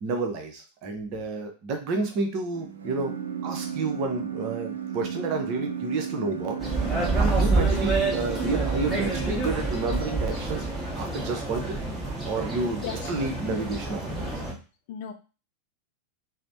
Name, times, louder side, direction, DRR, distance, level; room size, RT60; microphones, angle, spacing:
voice 1, 0.0-3.2 3.4-6.6 7.2-10.7 10.9-11.7 12.3-14.2, right 3 dB, 40° right, 4 dB, 0.6 m, -30 dB
sound 1, 2.5-9.5, right 8 dB, 70° right, 0.4 m, -34 dB
sound 2, 6.6-14.5, right 3 dB, 5° right, 0.9 m, -28 dB
Wind instrument woodwind instrument, 6.7-11.5, equal, 30° left, 1.0 m, -42 dB
voice 2, 12.8-13.1 14.9-15.1, left 8 dB, 50° left, 6 dB, 0.4 m, -36 dB
3.2 x 2.0 x 2.7 m, 0.33 s
figure-of-eight pair, 90°, 0 cm